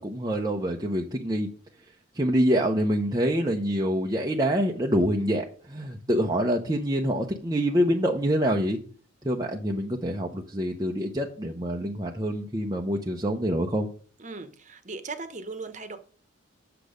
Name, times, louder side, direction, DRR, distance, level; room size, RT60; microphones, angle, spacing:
voice 1, 0.0-1.5 2.2-8.8 9.2-13.9, equal, 20° right, 0 dB, 0.8 m, -26 dB
voice 2, 14.2-16.0, right 3 dB, 35° right, 10 dB, 1.1 m, -38 dB
8.3 x 6.8 x 5.1 m, 0.42 s
head